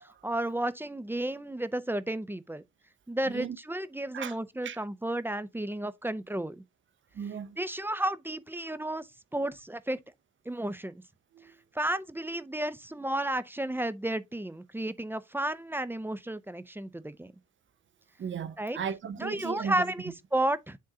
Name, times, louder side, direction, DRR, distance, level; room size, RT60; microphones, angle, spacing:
voice 1, 0.0-2.6 3.1-6.6 7.6-10.0 10.5-11.0 11.4-17.3 18.6-18.8 19.2-20.8, right 1 dB, 5° right, 0.5 m, -32 dB
voice 2, 3.3-3.6 4.1-4.4 4.6-4.8 7.1-7.6 11.3-11.6 18.2-19.9, right 7 dB, 40° right, 0.7 m, -36 dB
10.0 x 3.6 x 2.7 m
cardioid pair, 90°, 30 cm